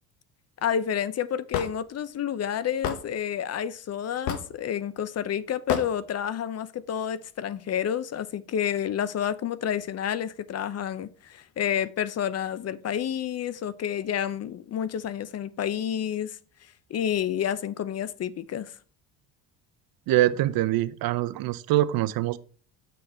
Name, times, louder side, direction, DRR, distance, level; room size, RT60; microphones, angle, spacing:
voice 1, 0.6-16.4 16.9-18.7, left 9 dB, 40° left, 0.6 m, -29 dB
Hammer / Wood, 1.5-1.7 2.8-3.0 4.3-4.6 5.7-5.9, left 8 dB, 75° left, 1.2 m, -28 dB
voice 2, 20.1-22.4, right 14 dB, 60° right, 0.6 m, -24 dB
6.5 x 6.5 x 4.3 m
supercardioid pair, 85°, 41 cm